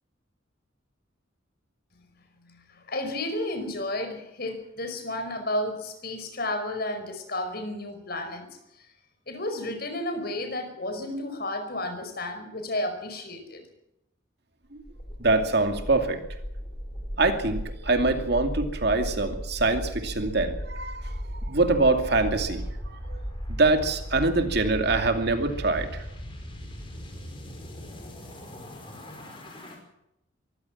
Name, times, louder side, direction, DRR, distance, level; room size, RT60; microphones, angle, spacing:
voice 1, 2.5-8.5 9.3-13.6, left 1 dB, 50° left, 8 dB, 5.1 m, -32 dB
sound 1, 14.8-29.8, equal, 25° left, 5.3 m, -36 dB
voice 2, 15.2-16.2 17.2-21.1 21.5-23.2 23.5-26.0, right 3 dB, 55° right, 6 dB, 2.5 m, -24 dB
24.0 x 16.0 x 7.4 m, 0.84 s
head